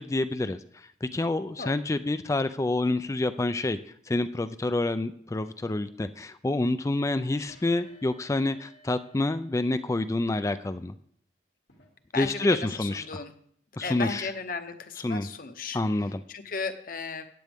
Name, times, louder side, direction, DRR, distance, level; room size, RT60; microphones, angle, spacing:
voice 1, 0.0-3.8 4.1-10.9 12.2-13.0 13.8-14.3 15.0-15.3 15.7-16.2, left 2 dB, 15° left, 12 dB, 0.3 m, -28 dB
sound 1, 7.5-10.0 11.7-11.9 13.8-14.4, left 1 dB, 85° left, 2.5 m, -57 dB
voice 2, 12.1-13.3 13.8-15.8 16.3-17.3, left 4 dB, 50° left, 8 dB, 0.9 m, -35 dB
14.0 x 9.3 x 3.5 m, 0.64 s
head